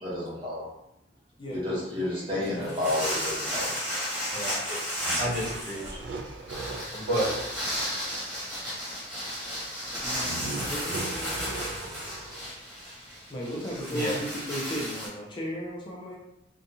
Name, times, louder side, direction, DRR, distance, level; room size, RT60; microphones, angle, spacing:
voice 1, 0.0-0.7 1.5-3.7, left 1 dB, 30° right, -8 dB, 1.0 m, -31 dB
voice 2, 1.4-2.9 10.0-11.7 13.3-16.1, equal, 25° left, -3 dB, 0.4 m, -36 dB
sound 1, 2.4-15.1, equal, 5° right, 1.1 m, -33 dB
voice 3, 4.3-6.1 6.9-7.5 13.9-14.2, equal, 55° right, -9 dB, 1.3 m, -32 dB
sound 2, 5.0-7.6 10.2-12.5, right 3 dB, 70° right, 0.3 m, -38 dB
2.6 x 2.2 x 2.7 m, 0.84 s
head